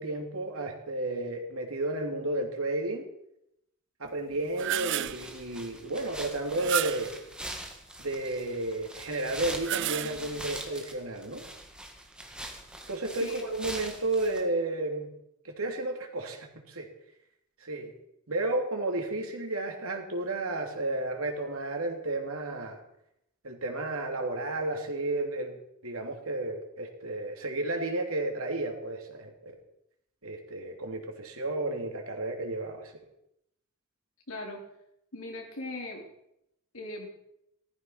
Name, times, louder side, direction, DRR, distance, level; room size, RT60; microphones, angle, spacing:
voice 1, 0.0-3.0 4.0-7.1 8.0-11.4 12.9-15.1 15.4-16.9 17.6-17.9 18.3-22.8 23.4-29.5 30.2-33.0, right 2 dB, 80° right, 3 dB, 3.1 m, -32 dB
sound 1, 4.3-5.3 6.5-7.2 9.4-10.5, right 12 dB, 60° right, 0.5 m, -32 dB
sound 2, 5.1-14.4, right 1 dB, 5° right, 2.0 m, -43 dB
voice 2, 34.3-34.6 35.1-36.0 36.7-37.1, left 2 dB, 70° left, 0 dB, 4.3 m, -39 dB
16.0 x 14.0 x 5.8 m, 0.81 s
head